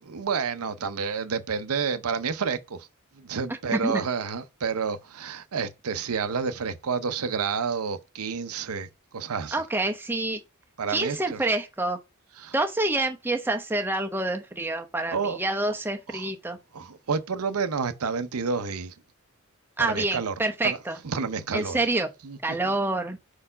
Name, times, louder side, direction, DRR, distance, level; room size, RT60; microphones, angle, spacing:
voice 1, 0.0-2.9 3.1-9.6 10.8-11.4 12.4-12.5 15.1-15.4 16.1-16.3 16.7-19.0 19.8-20.3 20.6-20.8 21.0-21.8 22.2-22.6, right 5 dB, 90° right, 0.7 m, -29 dB
voice 2, 3.5-4.0 9.5-10.4 10.9-12.0 12.5-16.6 19.8-21.0 21.5-22.1 22.4-23.2, right 2 dB, 10° right, 0.8 m, -27 dB
4.8 x 4.4 x 5.5 m
head